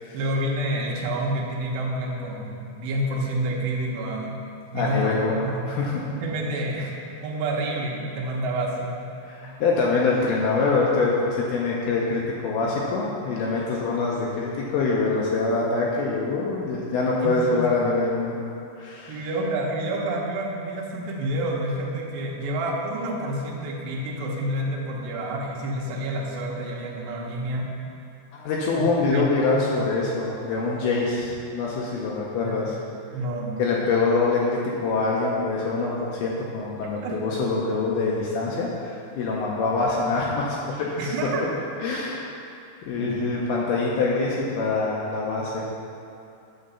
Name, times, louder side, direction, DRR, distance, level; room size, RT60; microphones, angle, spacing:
voice 1, 0.1-4.4 4.7-5.1 5.4-5.7 6.2-6.9 7.2-9.0 13.9-14.0 17.2-17.6 19.1-27.7 28.7-29.6 32.4-32.6 33.1-33.6 37.0-37.2 41.0-41.4 43.0-43.2, right 1 dB, 75° right, -2 dB, 2.3 m, -28 dB
voice 2, 4.7-6.0 9.3-18.3 18.8-19.3 28.3-32.7 33.6-41.1 41.8-42.5 42.9-45.6, left 3 dB, 85° left, -4 dB, 2.2 m, -25 dB
9.1 x 4.0 x 6.8 m, 2.6 s
omnidirectional pair, 5.3 m